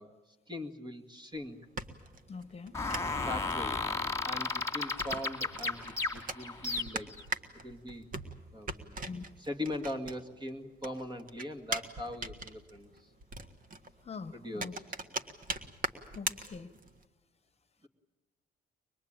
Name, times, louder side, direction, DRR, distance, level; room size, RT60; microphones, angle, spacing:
voice 1, 0.0-1.6 3.2-3.8 4.2-7.1 7.6-8.1 8.5-9.0 9.4-13.1 14.3-14.8 17.8-17.9, left 1 dB, 20° right, 7 dB, 2.0 m, -41 dB
sound 1, 1.3-10.5 10.8-17.0, right 3 dB, 45° right, 1.6 m, -41 dB
voice 2, 2.3-2.7 9.0-9.2 14.0-14.7 16.1-16.7, left 4 dB, 30° left, 11 dB, 1.3 m, -43 dB
sound 2, 2.7-7.2, left 3 dB, 15° left, 2.3 m, -34 dB
24.0 x 21.0 x 8.9 m, 1.2 s
cardioid pair, 90°, 20 cm